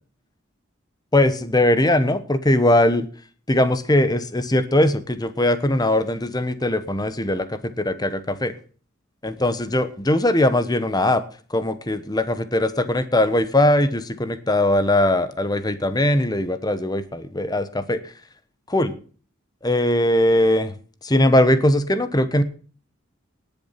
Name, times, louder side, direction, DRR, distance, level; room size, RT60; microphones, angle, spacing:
voice 1, 1.1-3.1 3.5-8.5 9.2-11.2 11.5-18.0 18.7-18.9 19.6-20.7 21.0-22.4, left 1 dB, 20° left, 12 dB, 1.1 m, -20 dB
19.0 x 7.2 x 5.8 m, 0.42 s
head